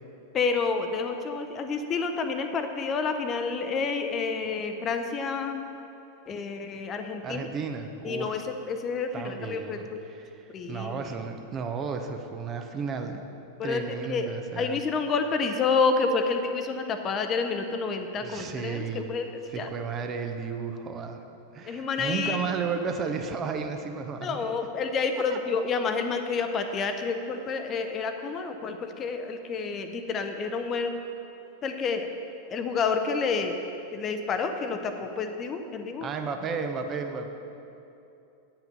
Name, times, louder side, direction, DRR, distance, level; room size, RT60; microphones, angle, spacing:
voice 1, 0.3-5.7 6.3-7.5 8.0-10.0 10.5-11.0 13.6-13.8 14.1-19.7 21.7-22.4 24.2-31.0 31.6-32.1 32.5-33.6 33.9-36.1, left 4 dB, 30° left, 7 dB, 0.6 m, -29 dB
voice 2, 7.2-8.4 9.1-10.3 10.7-13.2 13.6-14.8 18.2-19.1 19.5-21.2 21.5-24.4 25.3-25.4 36.0-37.3, right 5 dB, 30° right, 6 dB, 0.7 m, -33 dB
9.1 x 5.7 x 6.9 m, 2.8 s
figure-of-eight pair, 90°, 0 cm